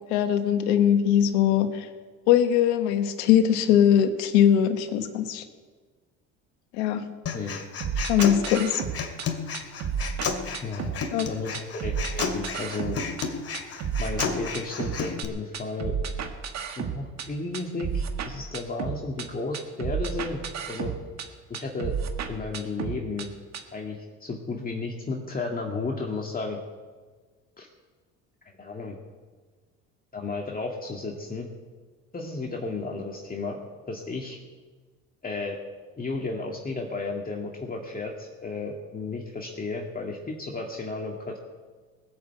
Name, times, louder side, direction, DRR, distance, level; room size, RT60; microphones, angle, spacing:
voice 1, 0.1-1.9 2.3-5.4 6.8-7.1 8.1-8.8 11.1-11.3, left 9 dB, 90° left, 8 dB, 1.3 m, -21 dB
Human voice, 7.3-15.2, left 5 dB, 45° left, 2.4 m, -32 dB
sound 1, 7.8-9.3 9.5-11.3 11.5-13.3 13.5-15.3 15.5-17.3 17.5-19.3 19.5-21.3 21.5-23.3 23.5-23.6, right 7 dB, 55° right, 1.8 m, -32 dB
voice 2, 10.6-13.0 14.0-16.0 16.8-20.4 20.7-20.9 21.5-22.0 22.3-23.3 23.7-26.6 27.6-27.7 28.6-29.0 30.1-31.5 32.1-33.6 33.9-34.4 35.2-35.6 36.0-41.4, left 3 dB, 25° left, 0 dB, 2.0 m, -33 dB
20.0 x 7.0 x 8.2 m, 1.4 s
supercardioid pair, 80°, 33 cm